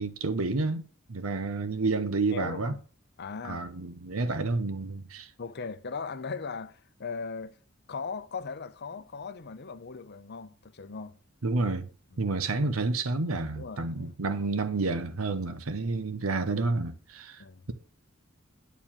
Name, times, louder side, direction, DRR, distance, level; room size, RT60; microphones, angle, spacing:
voice 1, 0.0-2.7 3.4-5.3 11.4-11.9 12.2-17.7, right 3 dB, 80° right, 0.9 m, -30 dB
voice 2, 2.3-2.8 3.2-3.7 4.2-4.4 5.4-7.6 7.9-11.2 12.1-12.2 13.6-14.1 17.4-17.6, left 5 dB, 55° left, 0.7 m, -38 dB
9.3 x 4.6 x 7.3 m
head